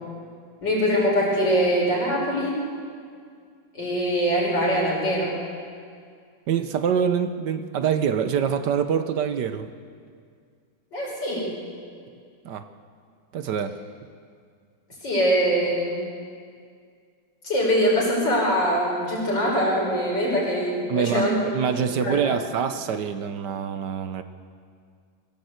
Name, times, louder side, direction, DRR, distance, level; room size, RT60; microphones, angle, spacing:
voice 1, 0.6-2.6 3.7-5.3 10.9-11.5 15.0-16.0 17.4-21.4 21.8-22.3, equal, 70° left, -4 dB, 6.2 m, -23 dB
voice 2, 6.5-9.7 12.4-12.7 13.3-13.8 20.9-24.2, right 7 dB, 70° right, 10 dB, 1.4 m, -25 dB
23.0 x 15.5 x 8.1 m, 2.2 s
omnidirectional pair, 2.0 m